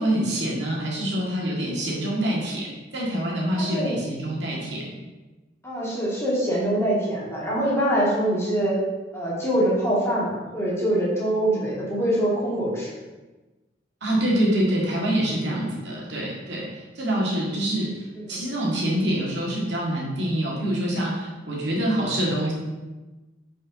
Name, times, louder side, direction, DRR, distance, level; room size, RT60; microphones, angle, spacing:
voice 1, 0.0-5.0 14.0-17.9 18.3-22.5, right 1 dB, 65° right, -3 dB, 1.9 m, -26 dB
voice 2, 3.6-3.9 5.6-8.7 9.1-12.9 15.3-15.6 18.1-18.5, right 1 dB, 15° left, -7 dB, 2.1 m, -24 dB
5.0 x 5.0 x 5.7 m, 1.2 s
head